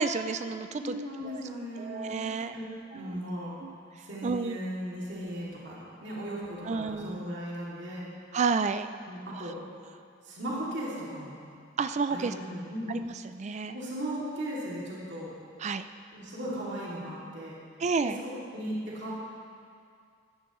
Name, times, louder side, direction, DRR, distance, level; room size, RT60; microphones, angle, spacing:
voice 1, 0.0-1.0 1.2-1.4 1.8-2.5 2.9-3.2 3.6-3.7 4.2-4.6 6.7-7.3 8.3-8.9 9.3-9.5 11.8-12.3 12.9-13.8 15.6-15.9 17.8-18.2, right 4 dB, 35° right, 10 dB, 0.4 m, -30 dB
voice 2, 0.7-2.3 2.5-2.7 2.9-3.6 4.0-8.1 9.1-9.6 10.2-11.4 12.1-12.9 13.5-15.3 16.1-17.6 18.0-19.2, equal, 60° right, -6 dB, 2.6 m, -37 dB
16.5 x 11.5 x 3.1 m, 2.3 s
head